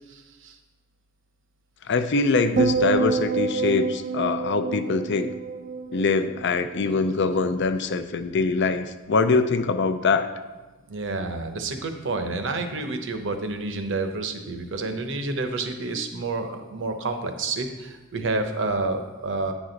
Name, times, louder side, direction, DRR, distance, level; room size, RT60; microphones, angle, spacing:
voice 1, 0.1-0.5 10.9-19.5, right 3 dB, 65° right, 7 dB, 0.8 m, -29 dB
voice 2, 1.9-5.3 5.9-10.3, left 4 dB, 60° left, 10 dB, 0.5 m, -23 dB
sound 1, 2.6-6.9 7.2-7.7, right 4 dB, 45° right, 0.4 m, -27 dB
9.4 x 6.2 x 3.9 m, 1.2 s
head